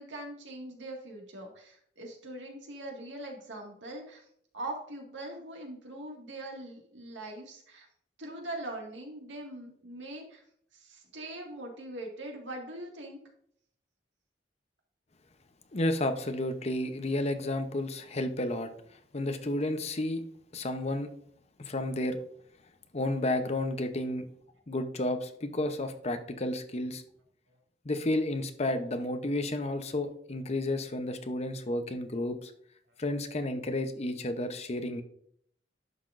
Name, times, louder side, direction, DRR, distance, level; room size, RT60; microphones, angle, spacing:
voice 1, 0.0-4.2 4.5-7.9 8.2-10.4 10.7-13.2, right 1 dB, 85° right, 1 dB, 2.0 m, -42 dB
voice 2, 15.7-18.7 19.1-20.2 20.5-21.1 21.6-22.2 22.9-24.3 24.7-27.0 27.8-32.5 33.0-35.0, left 1 dB, 35° left, 7 dB, 0.8 m, -31 dB
11.0 x 5.8 x 2.6 m, 0.64 s
head